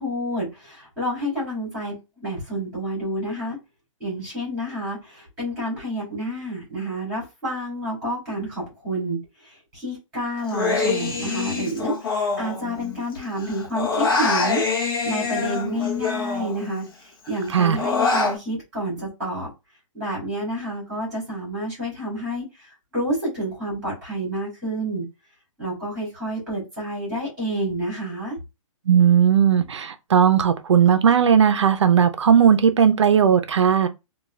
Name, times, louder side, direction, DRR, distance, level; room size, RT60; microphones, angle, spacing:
voice 1, 0.0-3.6 4.0-19.5 19.9-25.0 25.6-28.4, right 1 dB, 5° right, 2.2 m, -29 dB
Human voice, 10.5-13.1 13.4-16.9 17.3-18.4, left 4 dB, 40° left, 0.9 m, -25 dB
voice 2, 28.9-33.9, right 8 dB, 55° right, 0.5 m, -17 dB
3.6 x 2.3 x 3.1 m
hypercardioid pair, 180°, 18 cm